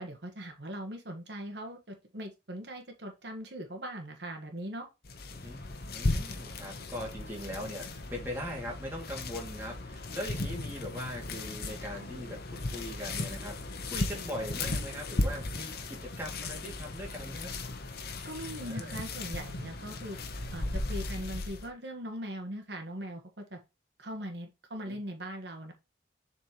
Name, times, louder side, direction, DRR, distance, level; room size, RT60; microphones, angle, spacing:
voice 1, 0.0-4.9 18.2-20.2 20.5-23.6 24.0-25.7, equal, 65° right, 1.5 m, -40 dB
sound 1, 5.0-21.7, left 2 dB, 60° left, 1.1 m, -36 dB
voice 2, 5.3-5.6 5.9-17.5 18.6-19.0 24.8-25.0, equal, 10° right, 2.5 m, -40 dB
7.4 x 4.4 x 3.1 m
head